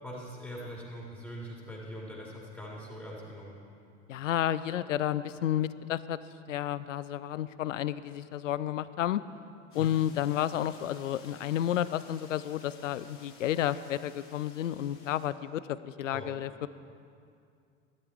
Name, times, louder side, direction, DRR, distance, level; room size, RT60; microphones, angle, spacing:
voice 1, 0.0-3.5 9.7-10.0 16.1-16.3, equal, 5° left, -5 dB, 3.5 m, -42 dB
voice 2, 4.1-6.2 6.5-9.2 9.7-16.7, left 11 dB, 75° left, 16 dB, 0.5 m, -31 dB
sound 1, 9.7-15.3, left 4 dB, 35° left, 3.3 m, -55 dB
16.5 x 12.0 x 4.8 m, 2.4 s
figure-of-eight pair, 75°, 39 cm